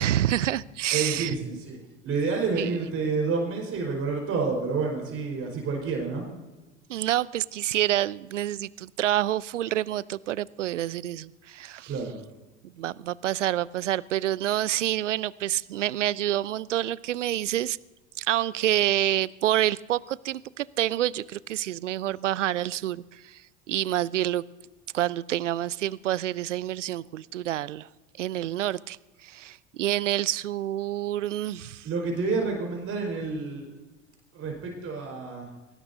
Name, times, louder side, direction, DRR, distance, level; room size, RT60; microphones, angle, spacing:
voice 1, 0.0-1.6 2.6-2.9 6.9-11.9 12.8-17.8 18.2-23.4 23.7-24.4 24.9-27.9 28.2-31.9, right 13 dB, 80° right, 23 dB, 0.5 m, -28 dB
voice 2, 0.9-1.8 2.0-6.3 11.9-12.2 31.8-33.7 34.3-35.5, right 4 dB, 40° right, 1 dB, 4.8 m, -29 dB
23.0 x 19.0 x 2.7 m, 1.1 s
figure-of-eight pair, 75°, 36 cm